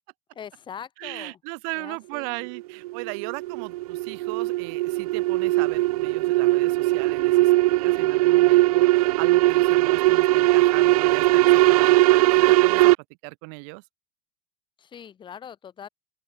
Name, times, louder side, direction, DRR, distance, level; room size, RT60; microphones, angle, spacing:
voice 1, 0.3-1.4 1.7-2.5 14.8-15.9, left 8 dB, 25° left, 2.9 m, -42 dB
voice 2, 1.0-12.0 12.3-12.9 13.2-13.8, right 40 dB or more, 60° right, 7.2 m, -37 dB
sound 1, 2.4-12.9, right 19 dB, 80° right, 0.7 m, -19 dB
open air
supercardioid pair, 135°, 19 cm